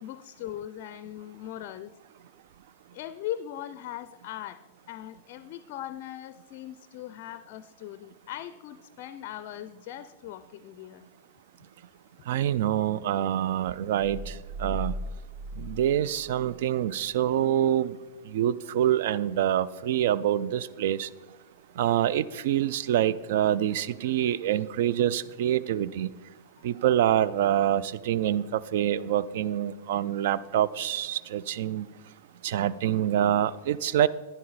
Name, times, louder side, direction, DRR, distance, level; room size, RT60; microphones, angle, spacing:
voice 1, 0.0-1.9 2.9-11.0 26.6-26.7, left 12 dB, 45° left, 15 dB, 0.4 m, -40 dB
voice 2, 12.3-14.3 14.6-14.9 15.6-17.9 18.3-21.1 21.8-26.1 26.6-31.9 32.4-34.1, right 11 dB, 60° right, 18 dB, 0.4 m, -26 dB
sound 1, 14.0-16.7, right 1 dB, 90° right, 3.0 m, -37 dB
11.0 x 10.0 x 4.0 m, 1.3 s
figure-of-eight pair, 100°, 0 cm